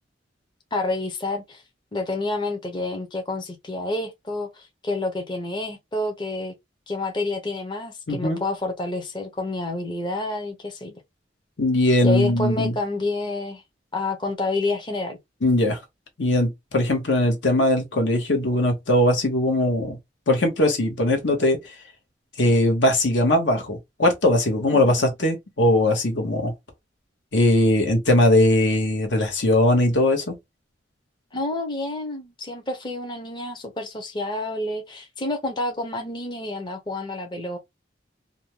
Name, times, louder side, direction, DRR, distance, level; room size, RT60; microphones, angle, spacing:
voice 1, 0.7-1.6 1.9-6.5 6.9-10.9 12.0-13.6 13.9-15.2 24.7-25.0 31.3-37.6, left 2 dB, 25° left, 0.5 m, -29 dB
voice 2, 8.1-8.4 11.6-12.7 15.4-15.8 16.2-20.0 20.3-21.7 22.4-26.5 27.3-30.3, left 1 dB, 85° left, 1.0 m, -20 dB
2.5 x 2.1 x 2.9 m
head